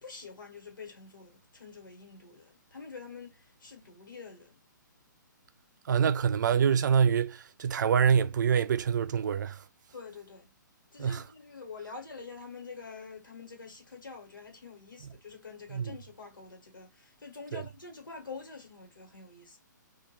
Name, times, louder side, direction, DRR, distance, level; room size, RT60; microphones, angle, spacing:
voice 1, 0.0-4.6 9.9-10.5 10.9-19.6, left 4 dB, 85° left, 1.3 m, -46 dB
voice 2, 5.9-9.6 11.0-11.2 15.7-15.8 17.5-17.6, right 7 dB, 65° right, 0.4 m, -25 dB
2.4 x 2.2 x 3.0 m
hypercardioid pair, 130°, 11 cm